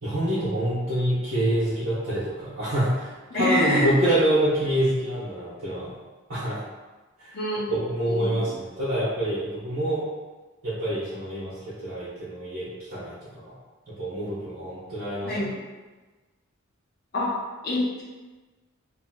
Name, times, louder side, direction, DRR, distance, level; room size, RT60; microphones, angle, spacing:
voice 1, 0.0-5.9 6.3-6.6 7.2-7.4 7.7-10.0 10.6-11.5 11.8-13.5 13.9-15.5, right 1 dB, 85° right, -12 dB, 1.1 m, -26 dB
voice 2, 3.3-3.9 7.3-8.5 15.2-15.6 17.1-17.4 17.6-18.0, left 1 dB, 50° left, -5 dB, 0.7 m, -26 dB
2.9 x 2.8 x 2.3 m, 1.2 s
head